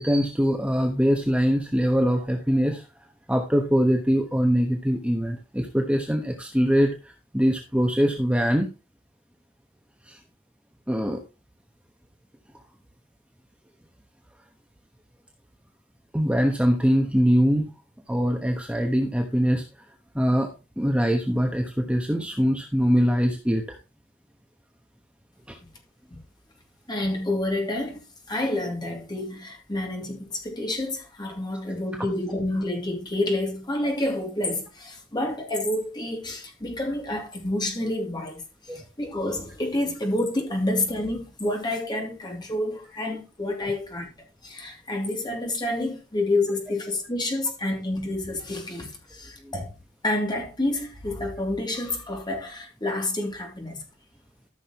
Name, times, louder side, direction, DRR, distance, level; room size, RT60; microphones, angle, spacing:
voice 1, 0.0-2.8 3.3-8.7 10.1-10.2 10.9-11.2 16.1-17.7 18.1-19.6 20.1-20.5 20.8-23.8 25.5-25.6 38.7-38.8 49.4-49.5, equal, 5° right, 1.1 m, -23 dB
voice 2, 26.9-49.8 50.0-53.8, left 1 dB, 20° left, 2.9 m, -29 dB
14.0 x 6.5 x 3.1 m
head